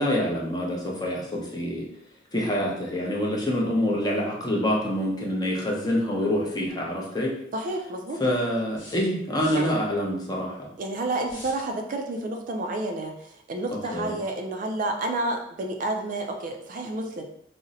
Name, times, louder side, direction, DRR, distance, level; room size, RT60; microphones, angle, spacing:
voice 1, 0.0-1.9 2.3-7.3 8.2-10.7 13.7-14.1, equal, 20° left, -2 dB, 0.6 m, -26 dB
voice 2, 7.5-8.2 9.5-9.7 10.8-17.2, right 2 dB, 45° right, 4 dB, 0.3 m, -30 dB
sound 1, 8.7-9.7 11.2-11.7, left 1 dB, 70° left, 1.2 m, -44 dB
2.6 x 2.0 x 3.8 m, 0.74 s
head